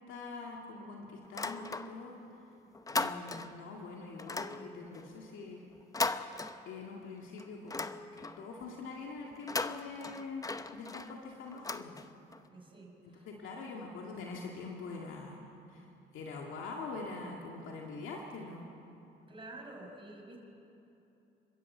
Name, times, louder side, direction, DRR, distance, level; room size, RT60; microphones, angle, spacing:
voice 1, 0.1-2.2 2.9-5.6 6.7-12.0 13.0-15.4 15.7-15.9 16.1-18.7, left 3 dB, 85° left, -1 dB, 2.1 m, -44 dB
sound 1, 1.3-2.2 2.5-3.7 4.2-7.0 7.4-8.5 9.3-12.4, left 3 dB, 15° left, 0.8 m, -38 dB
voice 2, 12.5-13.3 19.3-20.4, right 2 dB, 25° right, 0 dB, 5.7 m, -49 dB
28.5 x 13.0 x 8.3 m, 2.9 s
cardioid pair, 90°, 20 cm